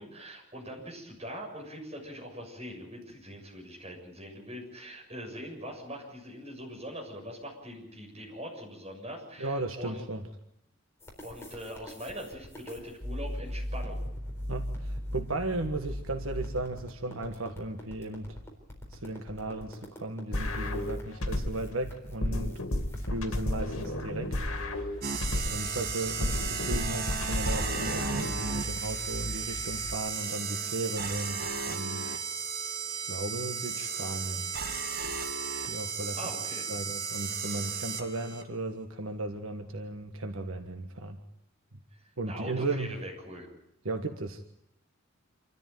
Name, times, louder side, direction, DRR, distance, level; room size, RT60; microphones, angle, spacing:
voice 1, 0.0-10.0 11.2-14.0 36.1-36.7 42.0-43.5, equal, 30° right, -1 dB, 7.1 m, -42 dB
voice 2, 9.4-10.2 14.5-18.4 18.9-22.6 22.9-24.3 25.4-32.1 33.1-34.5 35.7-36.2 36.7-41.2 41.7-41.8 42.2-42.9 43.8-44.4, right 2 dB, 80° right, 5 dB, 1.5 m, -35 dB
sound 1, 11.0-30.1, equal, 10° left, 4.1 m, -40 dB
sound 2, 20.3-21.7 22.2-25.7 26.2-28.3, left 1 dB, 85° left, 2.5 m, -32 dB
sound 3, 25.0-38.4, right 5 dB, 45° right, 1.9 m, -34 dB
27.0 x 13.5 x 9.3 m, 0.81 s
head